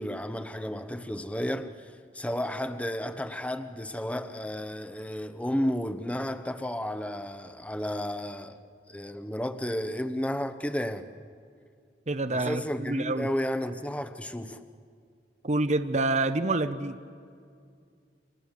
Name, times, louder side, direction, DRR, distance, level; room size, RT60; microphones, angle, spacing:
voice 1, 0.0-8.6 8.9-11.1 12.3-14.6, equal, 10° left, 9 dB, 1.0 m, -32 dB
voice 2, 12.1-13.3 15.4-16.9, right 2 dB, 40° right, 11 dB, 0.9 m, -27 dB
29.5 x 25.0 x 7.4 m, 2.3 s
head